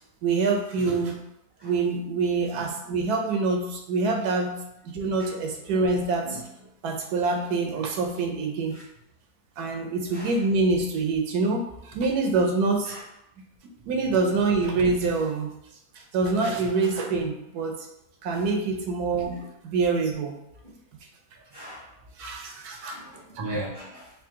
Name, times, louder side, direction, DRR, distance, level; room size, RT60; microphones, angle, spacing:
voice 1, 0.2-1.2 1.6-4.6 4.8-6.4 6.8-8.8 9.6-13.0 13.6-15.5 15.9-17.9 18.2-20.3 22.2-23.0 23.4-23.6, right 3 dB, 90° right, 3 dB, 1.2 m, -26 dB
voice 2, 21.5-21.9 22.7-24.1, right 1 dB, 20° left, -6 dB, 0.8 m, -37 dB
3.8 x 2.7 x 3.6 m, 0.82 s
omnidirectional pair, 1.6 m